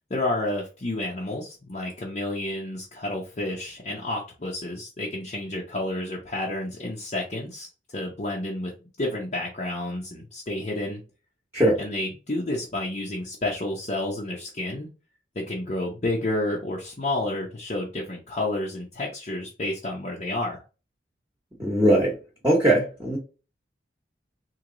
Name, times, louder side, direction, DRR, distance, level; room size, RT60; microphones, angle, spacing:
voice 1, 0.1-8.7 9.0-11.0 11.8-14.9 15.4-20.6, left 1 dB, 40° left, -3 dB, 0.7 m, -30 dB
voice 2, 21.6-22.1 22.4-23.2, right 1 dB, 15° right, -4 dB, 1.0 m, -20 dB
3.1 x 2.7 x 3.8 m, 0.32 s
head